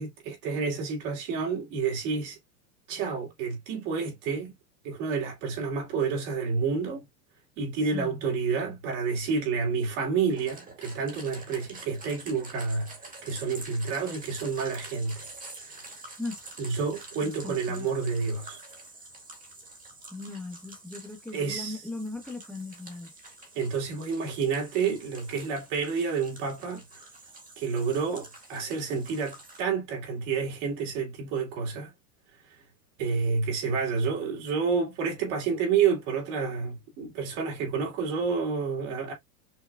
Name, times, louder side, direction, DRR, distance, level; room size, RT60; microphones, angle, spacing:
voice 1, 0.0-2.4 2.9-4.5 4.8-7.0 7.6-15.3 15.7-15.9 16.6-18.6 21.3-21.8 23.5-26.8 27.6-31.9 33.0-39.1, right 5 dB, 50° right, 2.6 m, -29 dB
voice 2, 7.9-8.3 16.2-16.4 17.2-17.9 20.1-23.1, left 2 dB, ahead, 1.3 m, -38 dB
sound 1, 10.3-29.6, right 2 dB, 15° right, 1.9 m, -47 dB
6.0 x 2.9 x 2.2 m
supercardioid pair, 125°, 47 cm